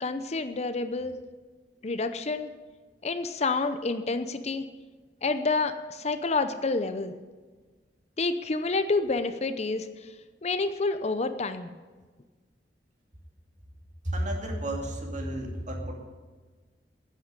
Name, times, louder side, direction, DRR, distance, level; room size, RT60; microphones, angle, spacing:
voice 1, 0.0-1.1 1.8-2.5 3.0-4.7 5.2-7.1 8.2-9.9 10.4-11.7, left 3 dB, 40° left, 10 dB, 0.6 m, -28 dB
voice 2, 14.0-15.9, right 1 dB, 45° right, 1 dB, 2.5 m, -32 dB
10.5 x 9.3 x 9.7 m, 1.4 s
head